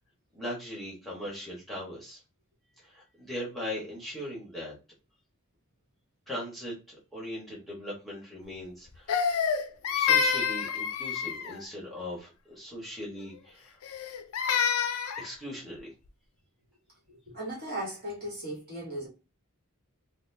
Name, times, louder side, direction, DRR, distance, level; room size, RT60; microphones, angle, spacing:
voice 1, 0.3-2.2 2.8-4.7 6.3-9.3 9.9-13.7 15.2-15.9, left 1 dB, ahead, -5 dB, 1.2 m, -39 dB
Crying sobbing, 9.1-11.6 13.8-15.3, left 6 dB, 70° left, 0.4 m, -27 dB
voice 2, 17.1-19.1, right 1 dB, 45° right, -2 dB, 1.2 m, -37 dB
4.0 x 2.1 x 2.7 m, 0.29 s
head